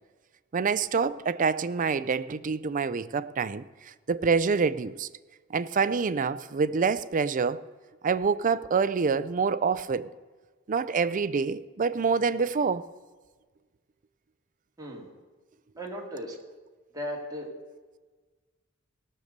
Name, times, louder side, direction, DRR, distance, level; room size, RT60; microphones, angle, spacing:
voice 1, 0.5-5.1 5.5-7.6 8.0-10.1 10.7-12.9, right 5 dB, 40° right, 0.4 m, -26 dB
voice 2, 14.8-15.1 15.8-16.3 16.9-17.5, equal, 15° right, 2.3 m, -36 dB
18.0 x 6.6 x 6.6 m
head